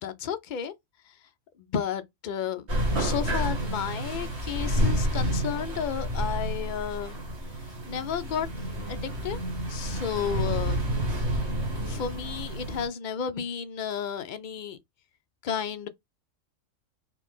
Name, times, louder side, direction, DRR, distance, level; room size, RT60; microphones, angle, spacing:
voice 1, 0.0-0.7 1.6-2.7 3.0-7.2 7.9-9.4 9.7-10.9 11.8-14.8 15.4-15.9, left 8 dB, 60° left, 0.5 m, -32 dB
sound 1, 2.7-12.9, equal, 55° right, 1.7 m, -29 dB
3.9 x 2.8 x 3.5 m
omnidirectional pair, 1.4 m